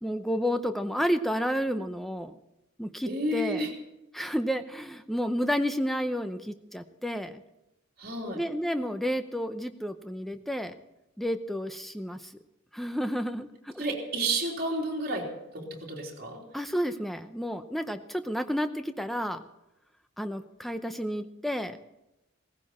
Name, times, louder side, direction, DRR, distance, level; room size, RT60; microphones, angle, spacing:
voice 1, 0.0-2.4 2.8-3.6 4.1-7.4 8.3-10.7 11.2-12.3 12.7-13.8 16.5-19.4 20.2-21.8, equal, ahead, 8 dB, 0.7 m, -31 dB
voice 2, 3.1-3.7 8.0-8.4 13.8-16.5, right 1 dB, 45° right, -2 dB, 3.5 m, -31 dB
17.0 x 15.5 x 4.3 m, 0.93 s
head